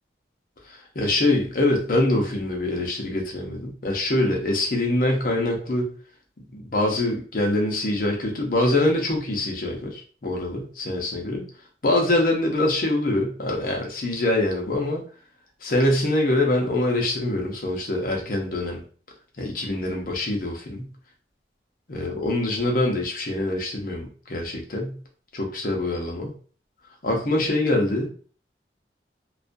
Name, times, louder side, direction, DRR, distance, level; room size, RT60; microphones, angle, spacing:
voice 1, 0.7-5.9 6.5-11.4 11.8-15.0 15.6-18.8 19.4-20.9 21.9-25.0 25.3-26.3 27.0-28.1, left 1 dB, 50° left, 1 dB, 0.6 m, -24 dB
2.4 x 2.2 x 2.5 m, 0.42 s
head